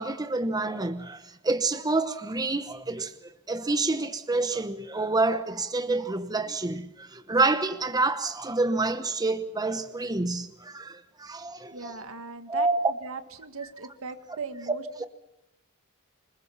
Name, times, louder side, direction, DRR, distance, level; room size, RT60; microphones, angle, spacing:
voice 1, 0.0-3.1 3.5-11.9 12.5-12.9, right 3 dB, 20° right, 0.9 m, -28 dB
voice 2, 11.7-12.7 13.0-15.1, right 4 dB, 70° right, 1.8 m, -38 dB
26.5 x 21.5 x 5.7 m
head